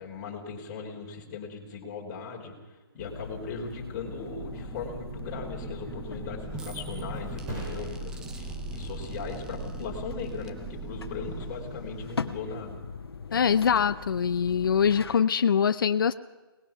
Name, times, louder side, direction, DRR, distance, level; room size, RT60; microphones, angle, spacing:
voice 1, 0.0-2.5 2.9-12.8 13.3-13.5, left 4 dB, 20° left, -1 dB, 3.7 m, -38 dB
sound 1, 3.0-15.2, left 5 dB, 85° left, 1.5 m, -41 dB
sound 2, 4.1-12.6, right 3 dB, 5° right, 0.6 m, -40 dB
Thump thud, 6.0-13.3 13.8-14.2, right 2 dB, 20° right, 7.1 m, -47 dB
voice 2, 13.3-16.1, left 7 dB, 60° left, 11 dB, 0.7 m, -23 dB
23.5 x 20.0 x 5.9 m, 1.2 s
hypercardioid pair, 170°, 12 cm